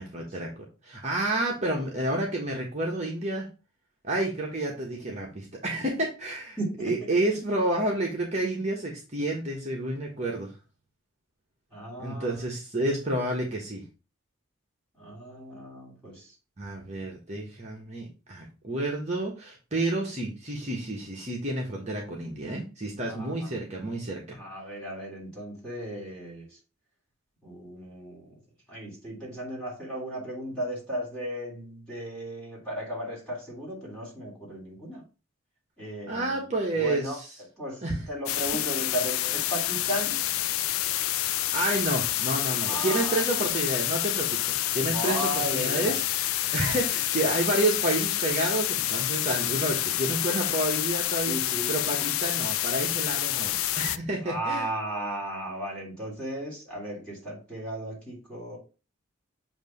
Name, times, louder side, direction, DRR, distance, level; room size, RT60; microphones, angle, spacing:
voice 1, 0.0-3.5 4.0-10.5 12.0-13.8 16.6-24.4 36.1-37.3 37.8-38.1 41.5-46.0 46.5-51.4 51.7-54.7, right 1 dB, 35° right, -1 dB, 1.2 m, -30 dB
voice 2, 6.6-6.9 11.7-12.4 15.0-16.3 23.1-23.5 24.3-26.5 27.4-28.3 28.7-35.0 35.8-36.4 36.8-37.2 37.6-37.8 38.1-40.2 42.7-43.2 44.8-46.0 51.3-52.1 54.2-58.6, right 1 dB, 5° left, -4 dB, 3.3 m, -35 dB
sound 1, 38.3-54.0, left 14 dB, 85° left, 0.4 m, -28 dB
7.8 x 2.8 x 5.3 m, 0.32 s
head